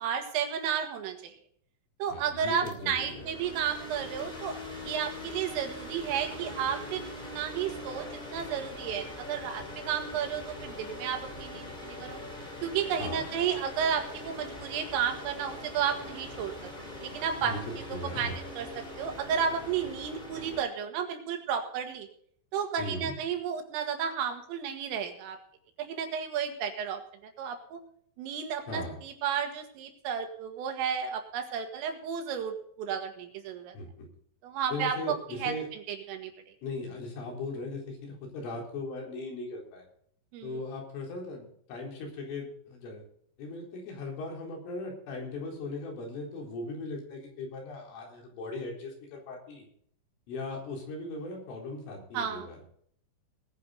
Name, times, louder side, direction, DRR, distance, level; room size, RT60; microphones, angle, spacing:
voice 1, 0.0-1.4 2.0-7.0 7.3-12.2 12.6-16.5 17.0-17.6 17.9-18.7 19.0-22.1 22.5-25.4 25.8-27.0 27.4-27.8 28.2-33.8 34.4-36.3 40.3-40.6 52.1-52.5, right 7 dB, 75° right, 5 dB, 4.4 m, -32 dB
voice 2, 2.1-3.3 13.0-13.3 17.4-17.6 17.9-18.4 22.8-23.1 28.7-29.0 33.7-34.1 34.7-35.7 36.6-39.9 40.4-43.0 43.4-49.7 50.3-52.6, left 2 dB, 70° left, 0 dB, 6.5 m, -38 dB
sound 1, 2.4-20.6, left 1 dB, 15° left, 1.5 m, -42 dB
19.5 x 9.9 x 3.9 m, 0.63 s
omnidirectional pair, 6.0 m